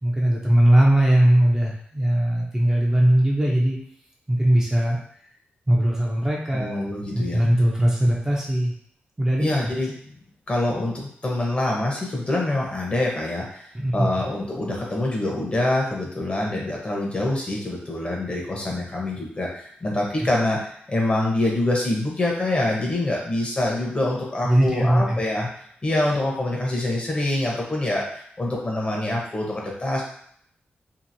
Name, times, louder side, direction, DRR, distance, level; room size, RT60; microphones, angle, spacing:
voice 1, 0.0-3.8 4.3-5.0 5.7-6.8 7.1-8.7 9.2-9.5 13.7-14.1 24.4-25.2, right 1 dB, 15° right, -3 dB, 0.6 m, -19 dB
voice 2, 6.5-7.4 9.4-10.1 10.5-25.5 25.8-30.0, left 1 dB, 30° left, -2 dB, 0.8 m, -25 dB
2.8 x 2.6 x 2.6 m, 0.64 s
wide cardioid pair, 105°, 4 cm